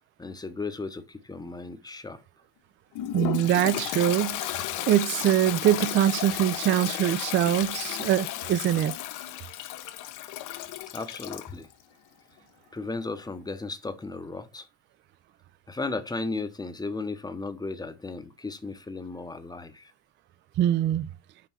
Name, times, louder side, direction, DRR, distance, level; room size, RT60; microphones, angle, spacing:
voice 1, 0.2-2.2 10.9-11.7 12.7-14.7 15.7-19.9, left 3 dB, 10° left, 0.9 m, -35 dB
Toilet flush, 3.0-11.5, left 13 dB, 60° left, 1.0 m, -33 dB
voice 2, 3.1-4.5 4.9-8.9 20.6-21.1, right 11 dB, 35° right, 0.4 m, -23 dB
5.8 x 4.0 x 6.0 m
supercardioid pair, 105°, 34 cm